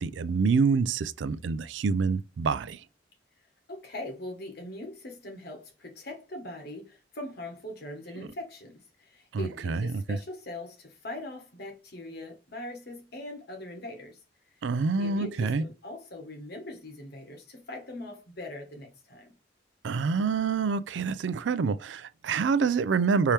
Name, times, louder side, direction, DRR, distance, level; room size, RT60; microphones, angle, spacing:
voice 1, 0.0-2.8 8.2-8.3 9.3-10.2 14.6-15.6 19.8-23.3, right 5 dB, 75° right, 0.4 m, -27 dB
voice 2, 3.7-14.2 15.0-19.3, left 1 dB, 60° left, 1.3 m, -41 dB
4.7 x 2.8 x 3.3 m
head